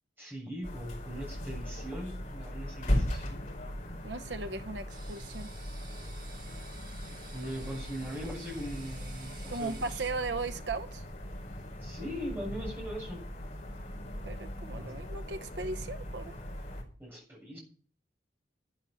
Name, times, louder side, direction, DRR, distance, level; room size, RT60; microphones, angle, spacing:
voice 1, 0.2-3.5 7.3-9.9 11.8-13.3 14.7-14.9 17.0-17.6, equal, 10° right, -2 dB, 7.3 m, -40 dB
sound 1, 0.6-16.8, equal, 45° left, 5.0 m, -38 dB
voice 2, 4.0-5.5 9.5-11.0 14.3-16.4, right 3 dB, 75° right, 9 dB, 0.9 m, -37 dB
sound 2, 4.9-10.1, right 5 dB, 50° right, 5.8 m, -52 dB
12.5 x 10.5 x 6.4 m, 0.41 s
head